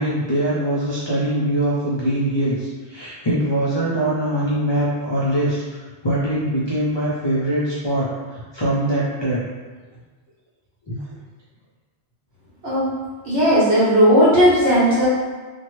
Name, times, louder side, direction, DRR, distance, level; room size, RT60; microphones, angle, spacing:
voice 1, 0.0-5.6 6.0-9.4 10.9-11.0, right 1 dB, 50° left, -8 dB, 0.3 m, -22 dB
voice 2, 13.2-15.1, equal, 70° right, -9 dB, 1.4 m, -15 dB
2.8 x 2.1 x 3.1 m, 1.3 s
omnidirectional pair, 1.2 m